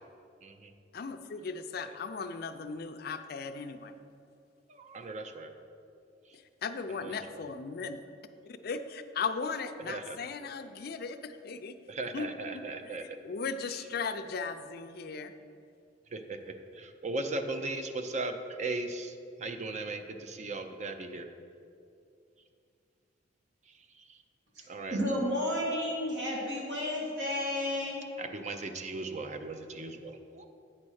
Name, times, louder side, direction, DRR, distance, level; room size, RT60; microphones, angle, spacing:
voice 1, 0.4-0.7 4.7-5.5 7.0-7.2 9.9-10.2 11.9-13.0 16.1-21.3 24.1-24.2 24.7-25.0 28.2-30.5, right 2 dB, 40° right, 7 dB, 0.5 m, -37 dB
voice 2, 0.9-3.9 6.3-8.0 8.6-11.8 12.1-12.7 13.0-15.3, left 5 dB, 55° left, 8 dB, 0.4 m, -37 dB
voice 3, 24.6-28.1, left 1 dB, 75° right, -3 dB, 1.9 m, -32 dB
8.8 x 4.3 x 6.3 m, 2.4 s
head